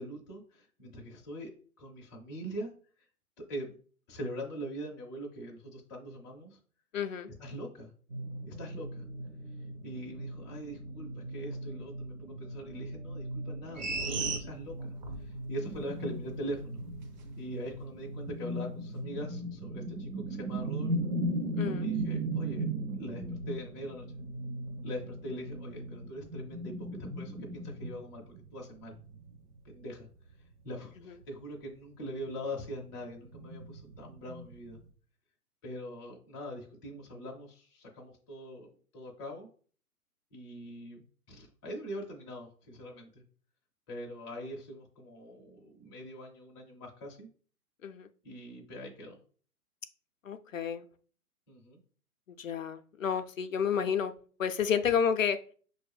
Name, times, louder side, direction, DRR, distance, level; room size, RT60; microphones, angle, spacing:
voice 1, 0.0-1.5 1.8-2.7 3.0-3.1 3.4-3.7 4.1-6.6 7.4-7.9 8.5-9.0 9.8-14.9 15.2-16.8 17.4-21.1 21.8-24.1 24.8-26.7 27.0-29.0 29.6-30.1 30.6-34.8 35.6-38.7 38.9-39.5 40.3-43.2 43.9-47.3 48.2-49.2 51.5-51.8 54.8-54.9, equal, 15° left, -1 dB, 0.5 m, -42 dB
voice 2, 6.9-7.3 21.6-21.9 47.8-48.1 50.2-50.9 52.4-54.1 54.4-55.4, left 7 dB, 60° left, 8 dB, 0.5 m, -30 dB
sound 1, 8.1-26.1, right 1 dB, 50° right, 1.0 m, -43 dB
sound 2, 13.8-15.3 15.7-15.8, right 4 dB, 30° right, 0.7 m, -34 dB
sound 3, 15.6-24.1 24.4-24.7 25.5-30.9 31.2-31.3 31.7-31.8 32.1-34.9, right 1 dB, 80° right, 0.8 m, -37 dB
6.0 x 2.6 x 3.3 m, 0.43 s
figure-of-eight pair, 120°, 45 cm